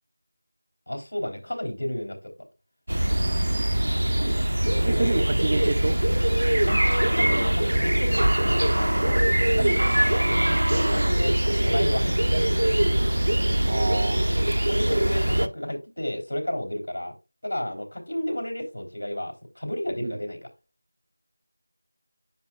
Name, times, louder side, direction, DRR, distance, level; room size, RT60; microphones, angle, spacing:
voice 1, 0.9-2.3 4.8-5.3 6.6-12.6 14.6-17.1 17.4-20.4, left 1 dB, 80° left, 3.5 m, -32 dB
sound 1, 2.9-15.5, right 1 dB, 75° right, 0.8 m, -22 dB
voice 2, 4.9-6.0 9.6-9.8 13.7-14.3 20.0-20.1, right 2 dB, 30° right, 0.5 m, -28 dB
9.7 x 5.4 x 2.5 m
figure-of-eight pair, 175°, 0 cm